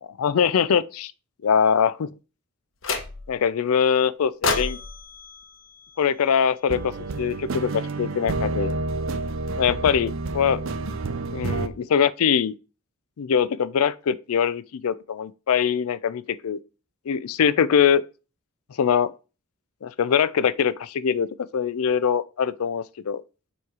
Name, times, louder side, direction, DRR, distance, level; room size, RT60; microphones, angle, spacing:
voice 1, 0.2-1.1 1.4-2.1 3.3-4.8 6.0-8.8 9.6-10.6 11.3-12.5 13.2-16.6 17.1-18.0 18.8-19.1 19.8-21.3 21.5-23.2, left 7 dB, 80° left, 0.4 m, -22 dB
sound 1, 2.8-3.5 4.4-6.7, left 4 dB, 60° left, 0.9 m, -30 dB
sound 2, 6.7-11.7, right 3 dB, 65° right, 0.5 m, -29 dB
7.1 x 3.1 x 4.7 m
head